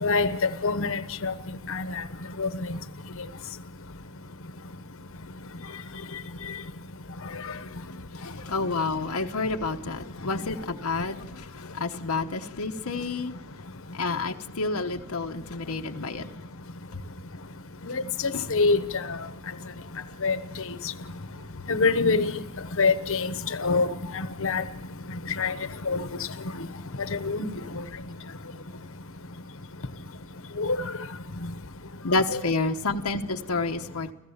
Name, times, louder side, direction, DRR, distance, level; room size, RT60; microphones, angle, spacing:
voice 1, 0.0-1.3 1.7-2.0 2.4-2.5 17.8-19.2 20.2-20.4 21.7-22.3 22.8-23.3 23.6-23.9 24.1-24.6 25.4-25.5 25.9-26.0 27.1-27.5 30.6-30.8, left 4 dB, 65° left, 1.2 m, -25 dB
voice 2, 7.9-13.3 13.9-16.3 16.9-17.0 18.3-18.5 21.3-21.5 32.0-34.1, left 3 dB, 85° left, 1.1 m, -29 dB
30.0 x 15.5 x 7.2 m
head